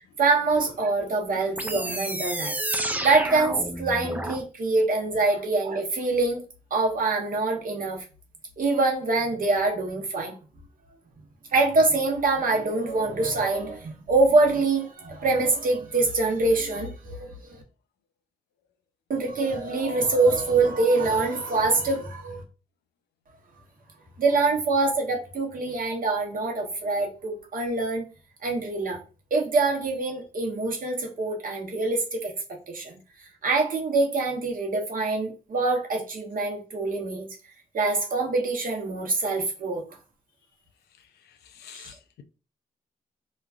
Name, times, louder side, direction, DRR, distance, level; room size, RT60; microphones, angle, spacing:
voice 1, 0.2-2.6 3.0-6.4 6.7-8.0 8.6-10.3 11.5-17.6 19.1-22.4 24.2-28.0 28.4-29.0 29.3-32.3 32.7-33.0 33.4-37.3 37.7-39.8 41.7-41.9, right 3 dB, 55° right, 1.0 m, -25 dB
sound 1, 1.6-4.4, right 1 dB, 10° right, 0.5 m, -30 dB
voice 2, 41.6-42.2, left 10 dB, 80° left, 0.4 m, -47 dB
3.1 x 2.2 x 2.5 m
supercardioid pair, 45°, 17 cm